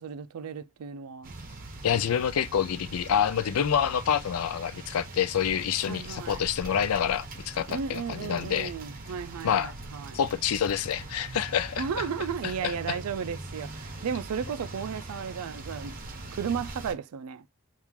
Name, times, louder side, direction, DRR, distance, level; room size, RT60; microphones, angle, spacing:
voice 1, 0.0-1.3 5.8-6.4 7.7-10.2 11.8-16.0 16.3-17.5, right 6 dB, 80° right, 0.4 m, -34 dB
sound 1, 1.2-16.9, right 2 dB, 40° right, 0.8 m, -42 dB
voice 2, 1.8-8.7 9.4-9.7 10.1-11.8 12.6-12.7, left 8 dB, 80° left, 0.4 m, -27 dB
2.9 x 2.5 x 3.5 m
head